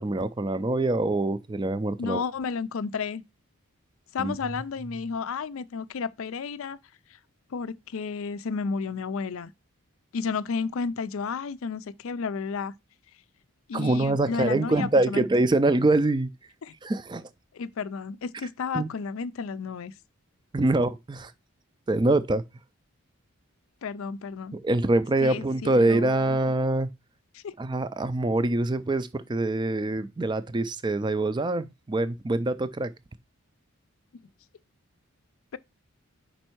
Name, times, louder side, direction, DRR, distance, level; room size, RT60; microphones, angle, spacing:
voice 1, 0.0-2.2 4.2-4.3 13.7-16.3 16.8-17.2 18.7-18.9 20.5-21.3 21.9-22.4 24.5-26.9 27.6-32.9, right 2 dB, 20° right, 0.4 m, -24 dB
voice 2, 2.0-3.2 4.1-6.8 7.5-9.5 10.1-12.7 13.7-15.3 16.6-16.7 17.5-19.9 23.8-24.6 25.2-26.4 27.3-27.5, left 5 dB, 70° left, 0.4 m, -32 dB
5.3 x 4.4 x 4.4 m
head